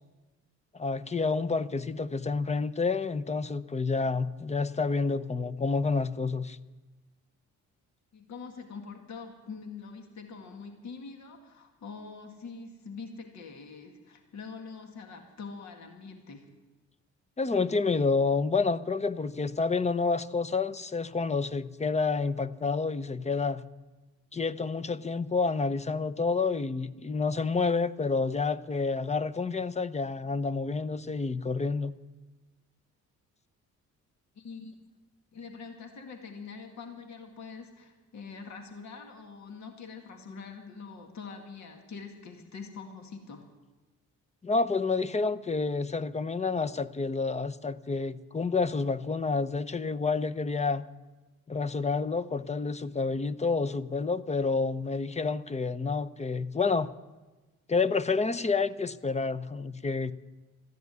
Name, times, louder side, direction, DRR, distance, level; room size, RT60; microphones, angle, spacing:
voice 1, 0.7-6.6 17.4-23.6 24.3-31.9 44.4-50.8 51.5-56.9 57.7-60.1, left 4 dB, 20° left, 14 dB, 0.7 m, -29 dB
voice 2, 8.1-16.5 34.4-34.7 35.3-43.5, left 5 dB, 65° left, 4 dB, 2.1 m, -44 dB
13.5 x 10.5 x 9.4 m, 1.2 s
cardioid pair, 90°, 30 cm